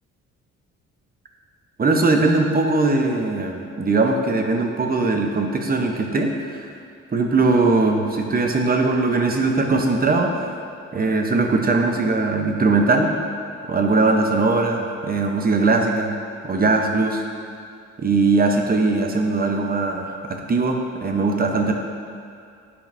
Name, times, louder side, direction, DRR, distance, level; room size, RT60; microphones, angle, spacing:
voice 1, 1.8-6.7 7.1-10.3 10.9-13.1 13.7-16.1 16.5-17.2 18.0-21.7, right 3 dB, 30° right, 3 dB, 0.8 m, -20 dB
9.9 x 5.2 x 2.6 m, 2.5 s
cardioid pair, 90°, 30 cm